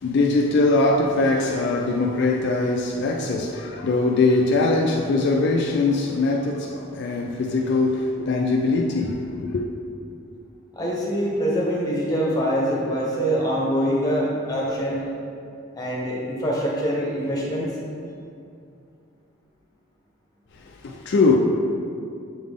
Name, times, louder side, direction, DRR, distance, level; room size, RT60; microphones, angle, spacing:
voice 1, 0.0-9.6 20.7-21.4, left 3 dB, 55° left, 0.4 m, -21 dB
voice 2, 10.7-15.1 15.7-17.7, equal, 20° left, 1.0 m, -24 dB
7.0 x 3.9 x 3.6 m
head